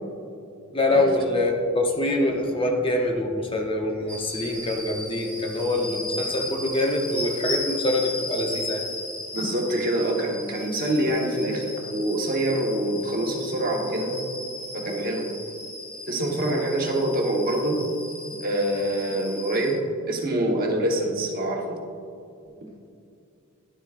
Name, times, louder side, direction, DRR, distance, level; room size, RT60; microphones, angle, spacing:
voice 1, 0.7-8.8, left 1 dB, 25° left, 1 dB, 0.7 m, -25 dB
sound 1, 4.1-19.7, left 2 dB, 5° left, 1.1 m, -36 dB
voice 2, 9.3-14.1 14.7-15.2 16.1-17.8 18.4-21.8, right 1 dB, 40° right, 0 dB, 1.1 m, -25 dB
11.0 x 7.7 x 2.5 m, 2.5 s
head